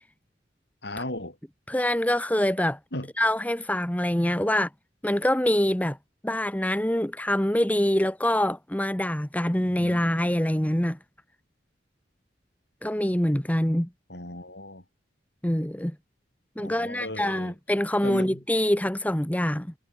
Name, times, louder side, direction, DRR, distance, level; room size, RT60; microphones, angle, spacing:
voice 1, 0.8-1.4 2.9-3.1 9.6-10.0 14.1-14.8 16.6-17.5 18.0-18.4, left 1 dB, 60° left, 7.1 m, -36 dB
voice 2, 1.7-2.8 3.2-4.7 5.0-6.0 6.2-11.0 12.8-13.9 15.4-15.9 16.6-19.7, left 1 dB, 10° left, 1.2 m, -25 dB
head